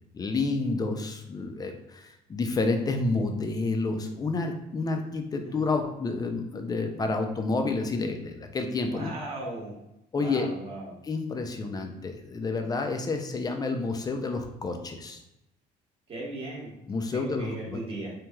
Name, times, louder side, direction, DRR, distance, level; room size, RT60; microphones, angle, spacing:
voice 1, 0.1-9.1 10.1-10.5 11.1-15.2 16.9-17.8, left 3 dB, 25° left, 5 dB, 0.4 m, -29 dB
voice 2, 8.8-9.7 10.1-10.9 16.1-16.7 17.1-18.1, right 2 dB, 35° right, -4 dB, 1.0 m, -37 dB
3.0 x 2.7 x 2.2 m, 0.85 s
cardioid pair, 110°, 17 cm